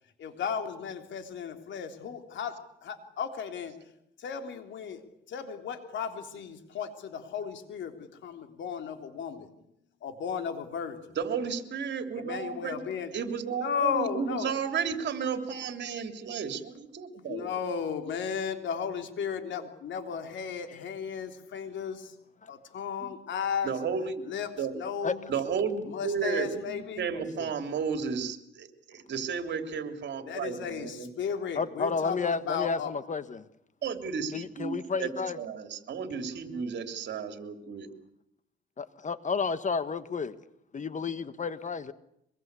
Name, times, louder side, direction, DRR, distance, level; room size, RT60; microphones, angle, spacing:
voice 1, 0.2-3.7 4.2-5.0 5.3-9.5 10.0-11.2 12.1-13.1 13.5-14.5 17.2-22.1 22.5-23.7 24.3-24.5 24.7-25.3 25.8-27.0 30.3-32.9, left 7 dB, 70° left, 3.5 m, -35 dB
voice 2, 11.1-12.8 13.1-17.5 23.6-24.2 24.6-24.7 25.3-31.1 33.8-35.1 35.4-37.9, right 6 dB, 60° right, 3.3 m, -33 dB
voice 3, 27.1-27.5 31.5-33.4 34.3-35.4 38.8-40.4 40.7-41.9, left 5 dB, 40° left, 1.3 m, -32 dB
24.5 x 22.5 x 8.3 m
cardioid pair, 90°, 20 cm